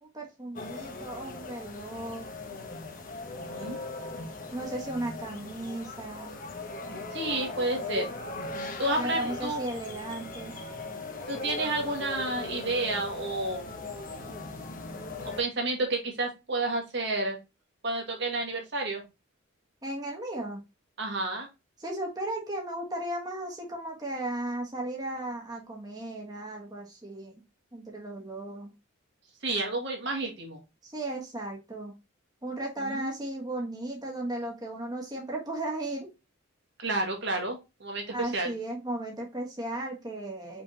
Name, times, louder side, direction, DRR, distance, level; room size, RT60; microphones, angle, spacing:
voice 1, 0.0-2.3 4.5-6.4 9.0-10.5 19.8-20.6 21.8-27.4 27.7-28.7 30.8-31.9 32.4-36.1 38.1-40.6, right 1 dB, 20° right, -1 dB, 1.3 m, -35 dB
sound 1, 0.6-15.4, left 2 dB, 40° left, 1.0 m, -38 dB
voice 2, 3.4-3.8 7.1-8.1 8.8-9.6 11.3-13.8 15.2-17.4 17.8-19.0 21.0-21.5 29.4-30.6 32.8-33.1 36.8-38.5, right 2 dB, 55° right, 2 dB, 1.7 m, -31 dB
5.3 x 3.5 x 2.9 m, 0.25 s
head